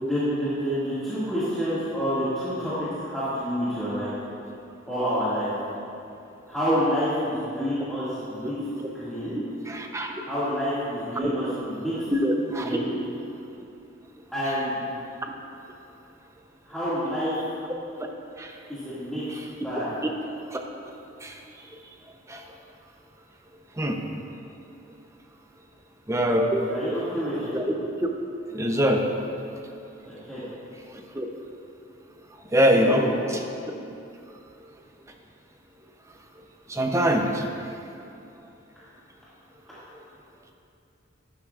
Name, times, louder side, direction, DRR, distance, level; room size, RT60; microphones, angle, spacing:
voice 1, 0.0-4.1 4.9-5.5 6.5-8.5 8.9-9.4 10.2-12.1 12.6-13.0 14.3-14.9 16.7-17.3 18.7-19.2 19.6-19.9 26.7-27.5 30.2-30.4 32.8-33.3, equal, ahead, -15 dB, 1.9 m, -28 dB
voice 2, 9.7-10.2 11.2-11.3 12.1-12.8 18.4-18.5 20.5-20.6 21.2-21.3 22.3-22.4 23.8-24.0 26.1-26.8 27.5-27.7 28.5-29.0 31.1-31.3 32.5-33.0 36.7-37.4, equal, 15° right, 3 dB, 0.6 m, -23 dB
11.5 x 10.5 x 2.4 m, 2.7 s
head